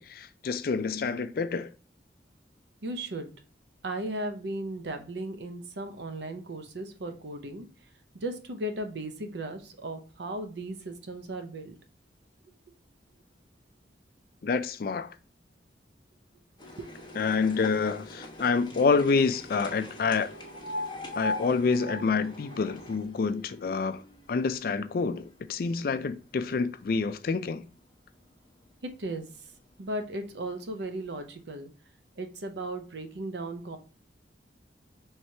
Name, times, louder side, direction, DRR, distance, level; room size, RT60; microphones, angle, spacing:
voice 1, 0.0-1.7 14.4-15.1 17.2-20.3 21.1-24.0 24.3-27.6, left 4 dB, 55° left, 0.4 m, -27 dB
voice 2, 2.8-3.3 3.8-7.7 8.2-11.7 16.8-17.1 29.0-29.3 29.8-31.7 32.2-33.8, right 1 dB, 75° right, 0.7 m, -36 dB
sound 1, 16.6-24.8 25.2-26.1 26.8-26.9 27.2-27.3 27.5-27.6 28.5-28.6 29.2-29.3 30.0-30.1 30.5-30.6, left 1 dB, 25° left, 0.8 m, -40 dB
4.6 x 3.2 x 2.8 m
head